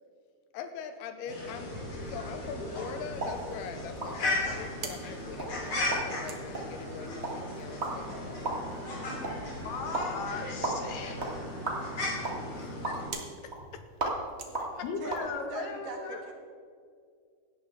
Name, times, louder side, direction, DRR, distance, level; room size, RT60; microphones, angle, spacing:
voice 1, 0.5-8.7 12.5-14.1 14.6-14.9, left 7 dB, 85° left, 8 dB, 2.8 m, -43 dB
sound 1, 1.3-13.1, left 1 dB, 35° left, 3.4 m, -36 dB
sound 2, 3.1-15.3, right 2 dB, 45° right, 0.8 m, -38 dB
sound 3, 4.8-15.4, right 4 dB, 85° right, 1.1 m, -50 dB
voice 2, 9.6-11.4 14.8-16.2, left 4 dB, 70° left, 4 dB, 2.5 m, -37 dB
voice 3, 15.0-16.3, right 2 dB, 60° right, 1 dB, 3.1 m, -40 dB
17.0 x 12.5 x 3.8 m, 2.2 s
omnidirectional pair, 4.6 m